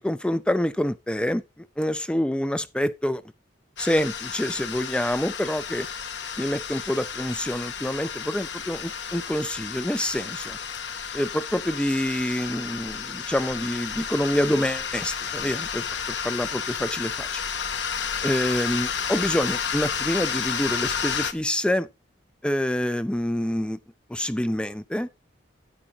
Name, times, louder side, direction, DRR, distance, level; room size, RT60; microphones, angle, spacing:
voice 1, 0.0-3.2 3.8-5.9 6.4-10.6 11.1-17.4 18.2-21.9 22.4-23.8 24.1-25.1, left 1 dB, 5° left, 0.4 m, -27 dB
sound 1, 3.8-21.3, left 7 dB, 65° left, 0.8 m, -31 dB
10.0 x 8.5 x 2.8 m
head